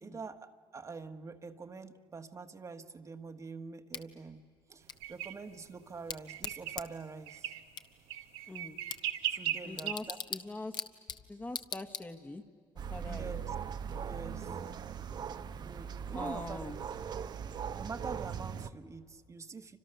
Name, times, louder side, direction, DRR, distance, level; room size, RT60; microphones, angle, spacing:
voice 1, 0.0-7.5 9.3-10.2 13.0-13.5 14.0-14.6 15.6-16.7 17.8-19.8, right 4 dB, 35° right, 6 dB, 1.4 m, -45 dB
Bicycle / Tick, 3.9-12.5, left 6 dB, 50° left, 1.5 m, -45 dB
sound 1, 5.0-5.3 6.3-6.8 7.3-7.6 8.1-9.9, right 11 dB, 85° right, 1.3 m, -36 dB
voice 2, 8.5-8.8 9.6-10.8 11.3-12.4 12.9-13.3 16.1-16.8, left 2 dB, 20° left, 6 dB, 1.5 m, -43 dB
sound 2, 12.8-18.7, right 7 dB, 50° right, 0.9 m, -40 dB
29.0 x 26.0 x 6.8 m, 2.1 s
supercardioid pair, 80°, 9 cm